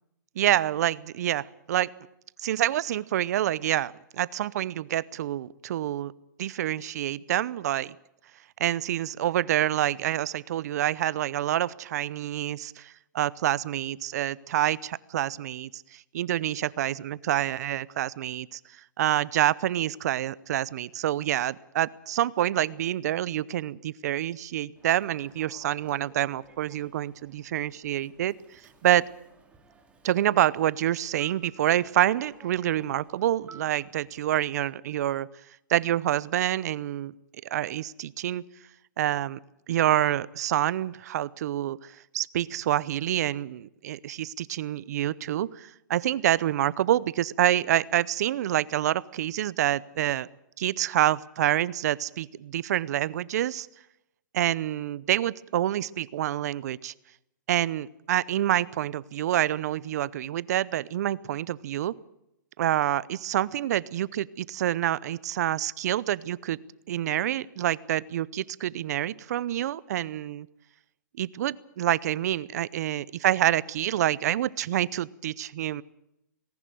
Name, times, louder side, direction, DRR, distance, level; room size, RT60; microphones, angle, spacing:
voice 1, 0.4-1.9 2.4-6.1 6.4-7.9 8.6-18.6 19.0-28.3 28.8-29.0 30.0-35.3 35.7-37.1 37.5-38.4 39.0-39.4 39.7-50.3 50.6-53.7 54.3-56.9 57.5-62.0 62.6-66.6 66.9-70.5 71.2-75.8, right 12 dB, 55° right, 22 dB, 0.7 m, -27 dB
Human voice / Subway metro underground, 24.8-34.2, right 4 dB, 10° right, 2.8 m, -55 dB
19.0 x 18.0 x 7.8 m, 0.84 s
hypercardioid pair, 145°, 10 cm